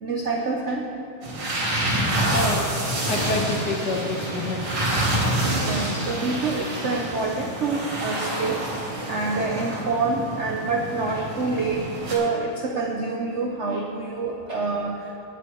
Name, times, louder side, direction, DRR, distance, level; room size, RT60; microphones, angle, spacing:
voice 1, 0.0-0.9 2.2-2.3 5.2-5.4 5.6-8.6 9.1-15.1, right 3 dB, 65° right, 1 dB, 0.7 m, -27 dB
sound 1, 1.2-12.1, right 1 dB, 80° right, 3.6 m, -27 dB
voice 2, 2.3-2.8 3.1-4.6, left 3 dB, 60° left, 2 dB, 1.4 m, -28 dB
9.7 x 6.5 x 8.3 m, 3.0 s
omnidirectional pair, 2.3 m